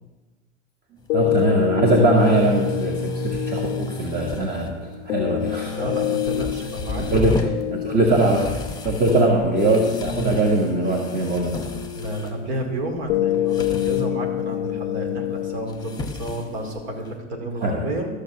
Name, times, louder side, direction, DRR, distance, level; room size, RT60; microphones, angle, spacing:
sound 1, 1.0-17.2, left 1 dB, 10° left, 1.3 m, -35 dB
sound 2, 1.1-17.1, left 14 dB, 60° left, 0.5 m, -28 dB
voice 1, 1.1-5.7 7.0-7.4 7.7-11.7 17.6-17.8, right 2 dB, 25° right, 0 dB, 1.6 m, -21 dB
voice 2, 5.6-7.3 11.9-18.1, right 1 dB, 60° right, 3 dB, 2.6 m, -30 dB
14.0 x 6.6 x 5.7 m, 1.2 s
figure-of-eight pair, 85°, 35 cm